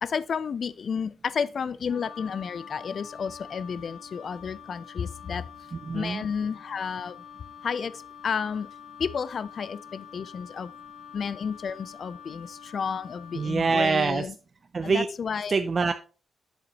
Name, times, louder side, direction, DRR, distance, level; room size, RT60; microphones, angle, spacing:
voice 1, 0.0-5.5 5.9-7.2 7.6-8.7 9.0-10.7 11.1-14.3 14.8-15.5, left 6 dB, 60° left, 0.5 m, -31 dB
Wind instrument woodwind instrument, 1.9-14.0, left 8 dB, 85° left, 1.7 m, -46 dB
voice 2, 5.7-6.3 13.3-14.3 14.7-15.1 15.5-15.9, right 4 dB, 45° right, 0.5 m, -25 dB
8.0 x 6.8 x 2.9 m
cardioid pair, 65°, 0 cm